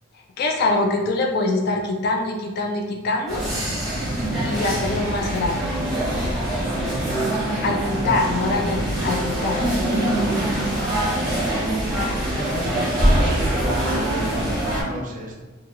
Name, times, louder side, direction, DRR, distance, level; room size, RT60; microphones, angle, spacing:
voice 1, 0.4-3.4 4.5-5.7 7.6-9.6, left 2 dB, 50° left, 1 dB, 0.3 m, -24 dB
sound 1, 3.3-14.8, right 1 dB, ahead, 0.7 m, -23 dB
voice 2, 4.1-4.5 7.9-8.1 12.3-14.5 14.8-15.4, right 1 dB, 40° right, -1 dB, 0.4 m, -32 dB
2.3 x 2.2 x 3.0 m, 1.2 s
head